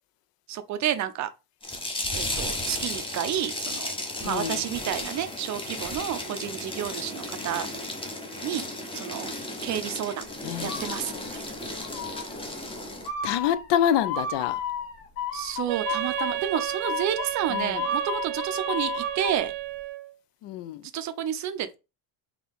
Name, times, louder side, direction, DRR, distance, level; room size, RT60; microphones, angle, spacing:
voice 1, 0.5-1.3 2.1-3.9 4.2-7.7 8.4-8.7 8.9-9.3 9.6-10.3 10.6-11.4 15.3-19.5 20.9-21.8, right 10 dB, 40° right, 0.5 m, -30 dB
sound 1, 1.6-13.1, left 1 dB, 10° left, 0.7 m, -34 dB
voice 2, 4.2-4.6 10.4-10.8 13.2-14.6 17.5-17.8 20.4-20.8, left 10 dB, 65° left, 0.6 m, -27 dB
sound 2, 10.7-11.4 11.8-12.4 13.0-19.4, left 4 dB, 85° left, 2.0 m, -33 dB
Wind instrument woodwind instrument, 15.7-20.1, right 15 dB, 85° right, 0.6 m, -33 dB
4.0 x 2.9 x 3.4 m
cardioid pair, 145°, 46 cm